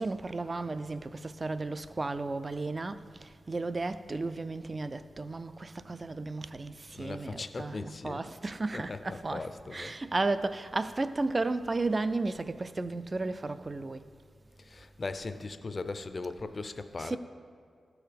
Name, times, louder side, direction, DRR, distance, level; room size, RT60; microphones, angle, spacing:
voice 1, 0.0-14.0 17.0-17.2, right 3 dB, 30° right, 0.3 m, -34 dB
voice 2, 6.9-8.2 8.7-9.9 14.6-17.2, left 3 dB, 40° left, 0.5 m, -39 dB
13.5 x 4.7 x 5.1 m
wide cardioid pair, 110°, 0 cm